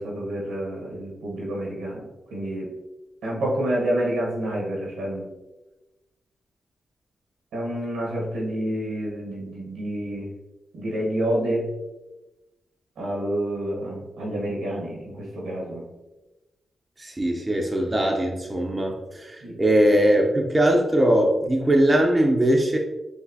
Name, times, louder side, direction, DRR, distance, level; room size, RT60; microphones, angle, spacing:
voice 1, 0.0-2.0 2.3-2.7 3.2-5.3 7.5-10.3 10.7-11.7 13.0-15.8 19.4-19.6, right 1 dB, 90° right, -3 dB, 1.3 m, -28 dB
voice 2, 17.0-22.8, right 1 dB, 25° right, 1 dB, 0.7 m, -21 dB
4.9 x 2.9 x 2.8 m, 1.0 s
supercardioid pair, 50°, 0 cm